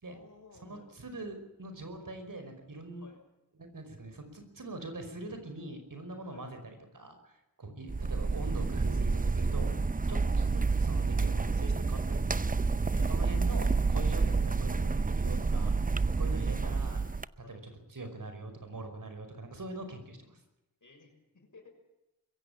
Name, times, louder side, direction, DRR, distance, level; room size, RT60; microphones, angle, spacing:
voice 1, 0.1-0.9 3.0-3.2 6.2-6.5 10.0-10.3 12.9-13.6 14.1-14.3 16.2-16.4 17.4-17.6 20.8-21.7, left 3 dB, 60° left, 4 dB, 6.3 m, -56 dB
voice 2, 0.6-3.0 3.6-12.4 12.9-17.0 17.5-17.6 17.9-20.4, right 2 dB, 70° right, 7 dB, 5.3 m, -43 dB
sound 1, 7.9-17.3, right 4 dB, 25° right, 0.7 m, -29 dB
22.0 x 16.0 x 8.5 m, 0.96 s
wide cardioid pair, 60°, 34 cm